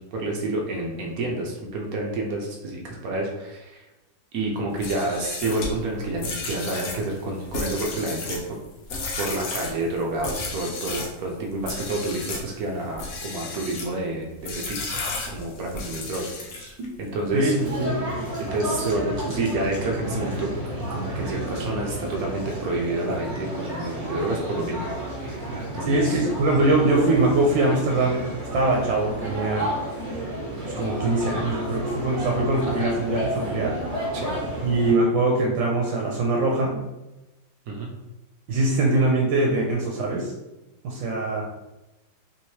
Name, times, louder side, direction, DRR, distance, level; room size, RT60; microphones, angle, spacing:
voice 1, 0.1-3.8 4.3-8.6 9.2-17.5 18.4-20.5 20.9-24.8 25.7-26.2 34.1-34.3 37.7-37.9, right 2 dB, 65° right, 0 dB, 0.9 m, -29 dB
sound 1, 4.7-11.2 11.6-12.5 12.9-13.9 14.4-16.9, left 3 dB, 65° left, 0.9 m, -33 dB
voice 2, 17.3-18.0 25.9-28.2 28.5-29.7 30.8-33.7 34.6-36.8 38.5-40.3 40.8-41.5, right 2 dB, 85° right, -1 dB, 1.3 m, -22 dB
sound 2, 17.6-34.9, right 1 dB, 25° right, 0.9 m, -31 dB
3.4 x 3.0 x 2.7 m, 1.0 s
omnidirectional pair, 2.0 m